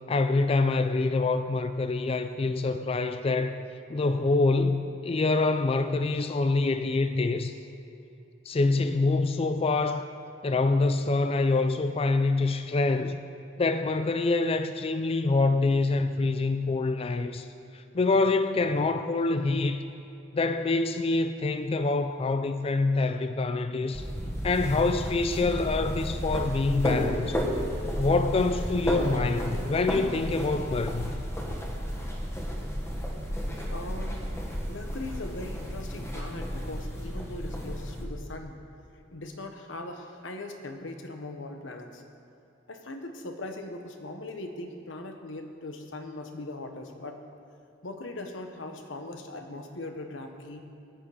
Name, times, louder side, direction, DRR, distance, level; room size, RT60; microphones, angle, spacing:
voice 1, 0.1-3.6 3.9-7.5 8.5-10.0 10.4-13.2 13.6-17.5 17.7-19.8 20.3-24.1 24.4-27.4 28.0-31.1, left 3 dB, 30° left, 0.4 m, -26 dB
sound 1, 23.9-38.0, equal, 15° left, 1.5 m, -32 dB
voice 2, 33.7-34.3 34.7-38.6 39.1-42.0 42.7-47.2 47.8-50.6, left 2 dB, 85° left, 1.2 m, -40 dB
15.0 x 9.3 x 5.0 m
head